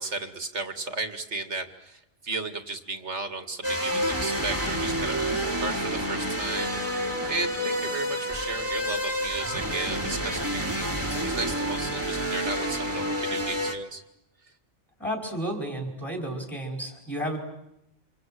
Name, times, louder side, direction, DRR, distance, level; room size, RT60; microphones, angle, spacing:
voice 1, 0.0-5.2 5.6-7.0 7.3-14.0, right 3 dB, 70° right, 6 dB, 2.6 m, -34 dB
sound 1, 3.6-13.7, equal, 10° right, 2.7 m, -29 dB
voice 2, 15.0-17.4, right 1 dB, 10° left, 1 dB, 4.9 m, -32 dB
28.0 x 27.5 x 7.7 m, 0.83 s
omnidirectional pair, 1.2 m